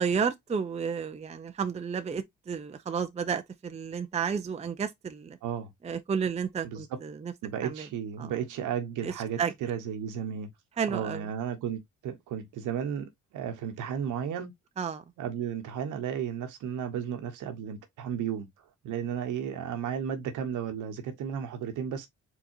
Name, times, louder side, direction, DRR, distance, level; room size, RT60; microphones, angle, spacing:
voice 1, 0.0-5.4 5.8-7.3 7.6-7.9 8.2-8.3 9.0-9.1 9.4-9.5 10.8-11.2 14.8-15.0, right 6 dB, 20° right, 0.5 m, -31 dB
voice 2, 6.6-7.0 7.4-10.5 10.9-14.5 15.2-18.5 18.8-22.1, right 8 dB, 85° right, 1.1 m, -34 dB
4.6 x 4.0 x 2.8 m
cardioid pair, 90°, 30 cm